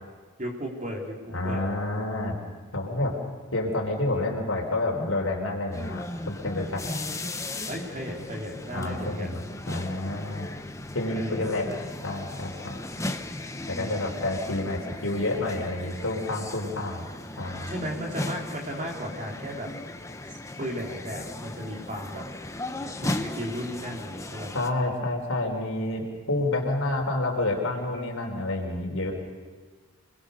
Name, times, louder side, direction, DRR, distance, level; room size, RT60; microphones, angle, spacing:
voice 1, 0.4-1.7 7.7-9.4 11.1-11.6 13.7-14.2 17.7-19.7 20.3-22.3 23.0-24.5, equal, 35° right, -1 dB, 4.0 m, -35 dB
voice 2, 1.3-2.3 2.7-3.1 3.5-7.0 8.7-9.4 9.7-10.5 10.9-11.7 12.0-12.8 13.7-17.1 17.4-17.7 24.5-29.1, left 2 dB, 70° left, 0 dB, 3.7 m, -29 dB
sound 1, 5.7-24.7, left 1 dB, 15° left, 1.0 m, -37 dB
26.5 x 21.0 x 6.7 m, 1.4 s
head